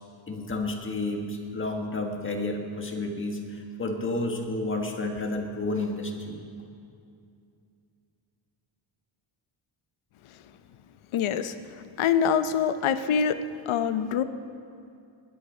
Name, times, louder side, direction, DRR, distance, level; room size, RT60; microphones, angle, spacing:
voice 1, 0.3-6.4, left 2 dB, 25° left, 2 dB, 1.6 m, -31 dB
voice 2, 11.1-11.6 12.0-13.4 13.7-14.2, left 7 dB, 80° left, 11 dB, 0.9 m, -24 dB
21.0 x 10.0 x 5.1 m, 2.5 s
cardioid pair, 140°, 49 cm